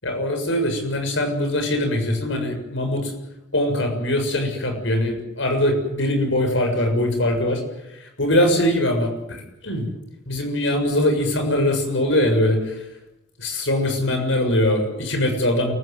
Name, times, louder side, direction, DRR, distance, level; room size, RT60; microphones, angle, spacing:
voice 1, 0.0-3.1 3.5-7.6 8.2-9.9 10.3-12.8 13.4-15.7, left 1 dB, 85° left, 5 dB, 7.1 m, -22 dB
29.0 x 15.5 x 9.4 m, 0.85 s
head